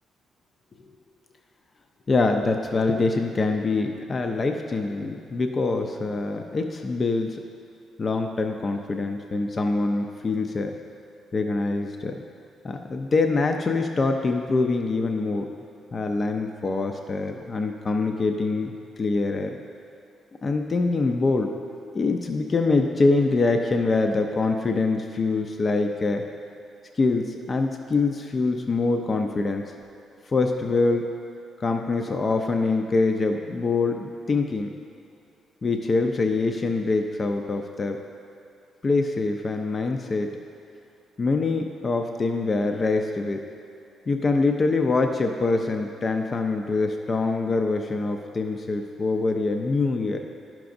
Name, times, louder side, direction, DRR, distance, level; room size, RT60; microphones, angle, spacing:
voice 1, 2.1-7.4 8.0-10.7 11.3-12.2 12.6-15.5 15.9-18.7 19.0-19.6 20.4-21.5 21.8-26.2 26.9-29.7 30.3-31.1 31.6-34.7 35.6-38.0 38.8-40.4 41.2-43.4 44.1-50.2, left 3 dB, 35° left, 4 dB, 0.4 m, -24 dB
10.5 x 5.9 x 2.6 m, 2.6 s
cardioid pair, 90°, 0 cm